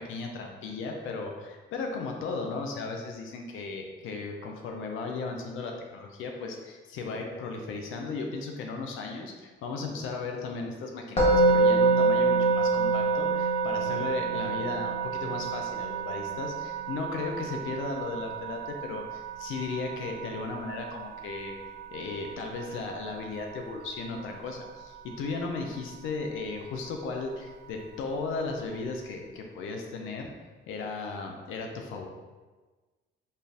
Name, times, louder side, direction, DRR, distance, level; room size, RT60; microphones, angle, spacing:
voice 1, 0.0-21.5 21.9-30.3 30.7-32.1, left 4 dB, 90° left, 2 dB, 0.6 m, -36 dB
Musical instrument, 11.2-22.3, right 3 dB, 30° left, 1.0 m, -27 dB
4.4 x 2.5 x 3.5 m, 1.3 s
cardioid pair, 90°, 20 cm